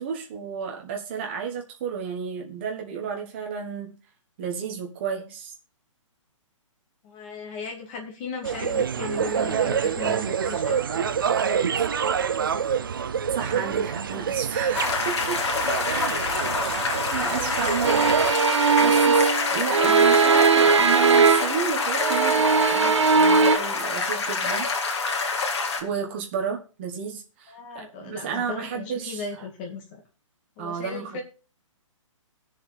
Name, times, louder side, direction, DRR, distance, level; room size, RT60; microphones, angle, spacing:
voice 1, 0.0-4.0 4.4-5.5 11.8-11.9 13.3-15.4 16.3-16.6 17.1-24.7 25.8-29.2 30.6-31.2, right 6 dB, 20° right, 1 dB, 1.3 m, -32 dB
voice 2, 7.0-10.8 27.5-30.0 30.6-31.2, left 5 dB, 20° left, 1 dB, 1.9 m, -37 dB
sound 1, 8.4-18.3, right 7 dB, 40° right, 0.5 m, -26 dB
sound 2, 14.7-25.8, left 4 dB, 55° left, 2.3 m, -27 dB
sound 3, 17.8-21.7 22.0-23.6, right 5 dB, 60° right, 0.9 m, -19 dB
19.5 x 7.0 x 3.3 m, 0.36 s
hypercardioid pair, 180°, 17 cm